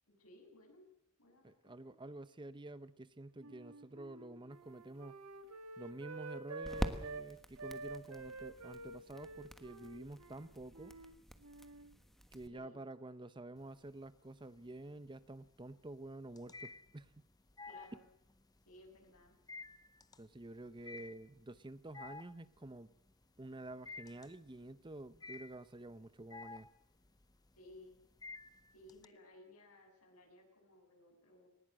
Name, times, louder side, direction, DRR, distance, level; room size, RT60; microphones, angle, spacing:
voice 1, 0.1-0.8 1.2-2.0 12.5-12.8 17.6-18.1 18.7-19.4 27.6-28.0 28.7-31.5, left 1 dB, 85° left, 2 dB, 7.7 m, -59 dB
voice 2, 1.4-5.2 5.8-10.9 12.3-17.3 20.2-22.9 23.4-26.7, right 2 dB, 20° right, 14 dB, 0.7 m, -49 dB
Wind instrument woodwind instrument, 3.4-7.3 7.6-11.1 11.4-12.0, right 3 dB, 80° right, 1.9 m, -49 dB
sound 1, 4.6-12.5, equal, ahead, 1.3 m, -47 dB
sound 2, 13.6-14.2 14.6-29.1, left 4 dB, 15° left, 0.7 m, -52 dB
19.5 x 19.0 x 7.7 m, 0.81 s
head